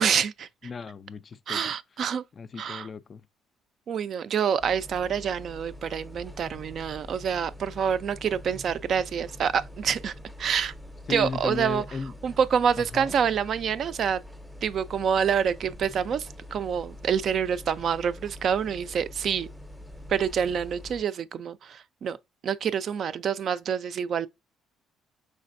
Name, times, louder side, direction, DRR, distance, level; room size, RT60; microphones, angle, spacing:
voice 1, 0.0-0.5 1.5-2.2 2.6-2.9 3.9-10.7 11.1-11.8 12.2-14.2 14.6-19.5 20.1-22.2 22.4-24.3, right 7 dB, 50° right, 0.3 m, -27 dB
voice 2, 0.6-1.6 2.4-3.2 11.1-12.1 12.8-13.1, left 4 dB, 35° left, 0.3 m, -35 dB
sound 1, 4.6-21.0, left 1 dB, 5° right, 0.6 m, -44 dB
5.0 x 3.3 x 2.5 m
cardioid pair, 120°, 0 cm